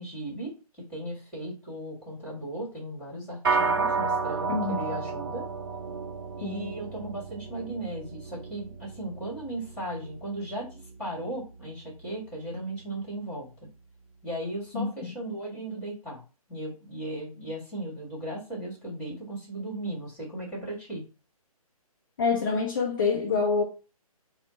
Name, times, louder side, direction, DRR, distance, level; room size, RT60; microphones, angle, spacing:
voice 1, 0.0-5.5 6.4-13.5 14.2-16.2 16.5-21.0, right 1 dB, 5° left, 1.6 m, -36 dB
sound 1, 3.4-13.0, right 4 dB, 40° right, 0.5 m, -33 dB
voice 2, 4.5-5.0 6.4-6.7 14.7-15.2 22.2-23.6, left 4 dB, 35° left, 0.5 m, -27 dB
4.2 x 2.1 x 3.9 m
figure-of-eight pair, 140°, 19 cm